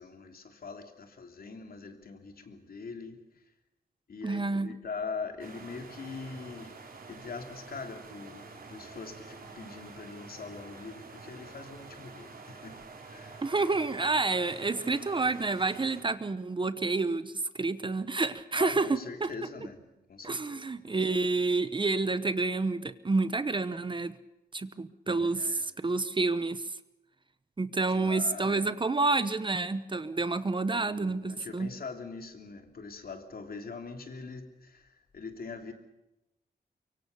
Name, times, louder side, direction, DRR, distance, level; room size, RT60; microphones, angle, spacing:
voice 1, 0.0-3.2 4.1-6.8 7.1-13.4 18.5-19.8 20.1-20.7 25.1-25.6 27.9-28.7 30.7-35.7, left 4 dB, 60° left, 5 dB, 3.1 m, -42 dB
voice 2, 4.2-4.7 13.4-19.3 20.2-24.1 24.5-26.6 27.6-31.7, right 3 dB, 30° right, 13 dB, 1.0 m, -29 dB
sound 1, 5.4-16.0, right 4 dB, 60° right, 4.2 m, -48 dB
24.0 x 24.0 x 6.8 m, 0.94 s
wide cardioid pair, 125°, 17 cm